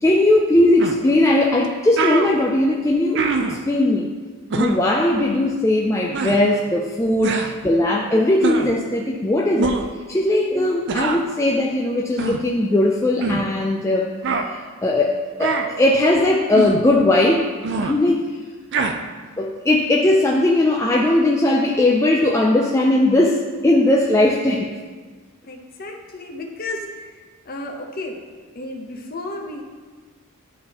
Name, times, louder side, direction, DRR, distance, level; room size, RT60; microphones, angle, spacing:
voice 1, 0.0-3.2 3.5-4.1 4.6-9.8 10.1-14.1 14.5-17.5 17.8-18.4 19.4-24.8, left 1 dB, 15° left, -1 dB, 0.3 m, -18 dB
sound 1, 0.8-1.0 1.6-1.7 2.0-2.3 3.1-3.6 4.5-4.8 6.1-6.4 7.2-7.5 8.4-8.7 9.6-9.9 10.9-11.2 12.2-12.4 13.2-13.5 14.2-14.5 15.4-15.7 16.5-16.8 17.6-17.9 18.7-18.9, right 4 dB, 50° right, 0.4 m, -23 dB
voice 2, 25.4-28.2 28.5-29.6, left 2 dB, 40° left, 1 dB, 0.8 m, -33 dB
11.0 x 3.8 x 2.9 m, 1.4 s
head